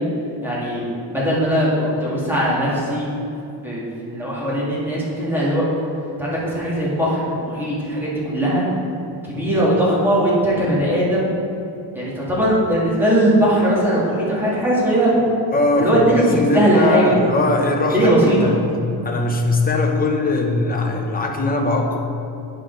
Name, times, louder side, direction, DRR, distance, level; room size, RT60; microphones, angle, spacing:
voice 1, 0.4-0.8 1.1-3.1 3.6-5.6 6.2-8.6 9.2-11.3 11.9-15.2 15.8-17.0 17.9-18.5, right 1 dB, 5° right, -7 dB, 1.9 m, -19 dB
voice 2, 15.5-18.6 19.0-22.0, left 2 dB, 20° left, 1 dB, 0.7 m, -20 dB
10.0 x 4.9 x 3.9 m, 2.7 s
cardioid pair, 145°, 48 cm